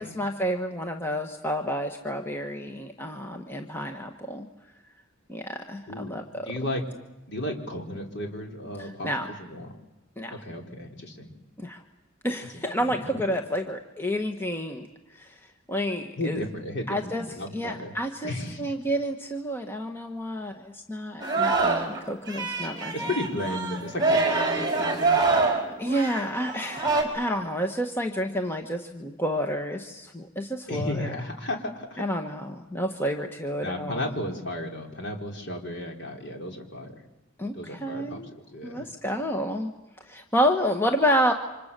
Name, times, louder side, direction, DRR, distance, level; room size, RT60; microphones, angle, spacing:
voice 1, 0.0-4.5 5.3-6.5 8.8-9.3 10.2-10.4 11.6-11.8 12.2-14.9 15.1-15.4 15.7-16.4 16.9-17.2 17.5-18.3 18.6-23.1 25.6-31.2 32.0-34.1 37.4-38.3 38.6-39.7 40.0-41.3, equal, 10° left, 5 dB, 1.3 m, -29 dB
voice 2, 5.9-6.8 7.3-9.1 9.4-9.7 10.3-11.3 12.8-13.4 16.2-17.9 18.2-18.6 22.9-25.4 30.7-32.0 33.6-36.9 37.5-38.9, left 1 dB, 55° left, 3 dB, 3.8 m, -34 dB
Singing, 21.2-22.0 22.3-27.0, right 3 dB, 20° right, 5.0 m, -25 dB
29.0 x 26.0 x 6.8 m, 1.0 s
head